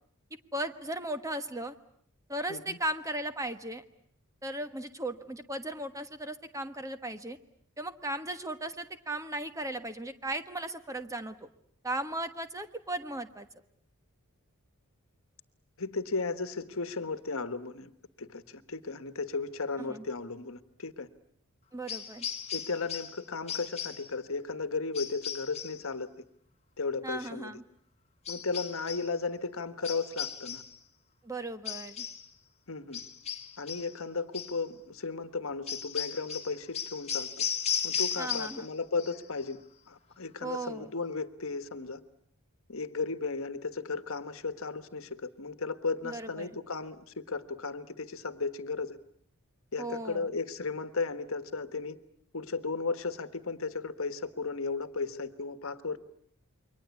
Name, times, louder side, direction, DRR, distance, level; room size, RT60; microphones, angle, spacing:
voice 1, 0.5-1.8 2.3-3.8 4.4-7.4 7.8-11.5 11.8-13.5 19.8-20.0 21.7-22.3 27.0-27.6 31.2-32.0 38.2-38.7 40.4-40.9 46.0-46.5 49.8-50.3, right 1 dB, 15° right, 9 dB, 1.3 m, -36 dB
voice 2, 15.8-17.9 18.2-21.1 22.5-26.1 26.8-27.6 28.3-30.6 32.7-33.0 33.6-37.4 37.8-39.6 39.9-42.0 42.7-49.0 49.7-52.0 52.3-56.0, left 4 dB, 65° left, 11 dB, 1.4 m, -35 dB
sound 1, 21.9-23.2 23.5-24.1 24.9-25.8 28.2-29.1 29.8-30.8 31.6-32.3 32.9-33.9 34.3-34.6 35.7-38.7 39.0-39.5, left 8 dB, 30° left, 1.8 m, -36 dB
28.5 x 23.0 x 8.3 m, 0.64 s
head